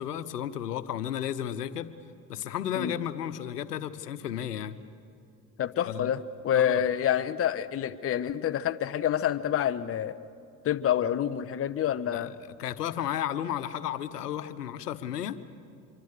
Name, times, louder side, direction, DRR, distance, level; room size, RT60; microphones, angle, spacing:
voice 1, 0.0-1.9 2.3-4.8 5.9-6.1 6.5-6.8 12.1-15.4, left 10 dB, 90° left, 12 dB, 1.1 m, -33 dB
voice 2, 5.6-10.1 10.6-12.3, left 10 dB, 30° left, 11 dB, 0.9 m, -27 dB
25.5 x 24.0 x 6.7 m, 2.4 s
hypercardioid pair, 80°, 46 cm